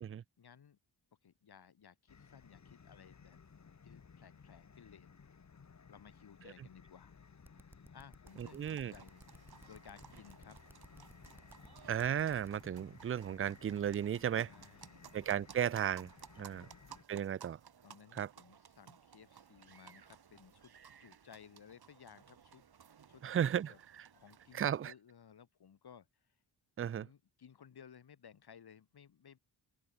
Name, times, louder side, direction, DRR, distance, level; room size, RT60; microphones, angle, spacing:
voice 1, 0.4-0.8 1.2-3.4 3.8-5.1 5.9-7.2 7.9-9.2 9.7-10.6 14.4-15.2 16.4-16.8 17.8-20.7 21.0-22.6 23.1-23.8 24.1-26.3 27.0-29.4, left 8 dB, 60° left, 3.5 m, -58 dB
sound 1, 2.1-17.0, left 5 dB, 40° left, 2.9 m, -59 dB
sound 2, 7.4-12.5, right 1 dB, 5° right, 4.0 m, -58 dB
sound 3, 8.3-24.8, right 7 dB, 60° right, 3.4 m, -59 dB
voice 2, 8.4-8.9 11.9-14.5 15.1-16.1 16.4-16.7 17.1-17.6 18.1-18.3 23.2-24.1 24.5-24.9 26.8-27.1, right 9 dB, 30° right, 0.4 m, -35 dB
wide cardioid pair, 145°, 42 cm